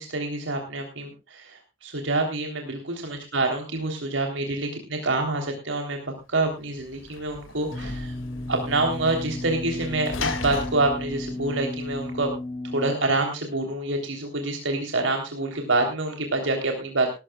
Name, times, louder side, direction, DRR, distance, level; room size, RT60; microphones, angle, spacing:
voice 1, 0.0-8.1 8.5-12.3 12.7-17.1, right 2 dB, 70° right, 3 dB, 3.4 m, -27 dB
Sliding door / Slam, 6.4-12.3, left 3 dB, 85° left, 2.4 m, -37 dB
sound 1, 7.7-12.9, left 2 dB, 20° left, 1.0 m, -34 dB
19.5 x 14.0 x 2.3 m, 0.29 s
head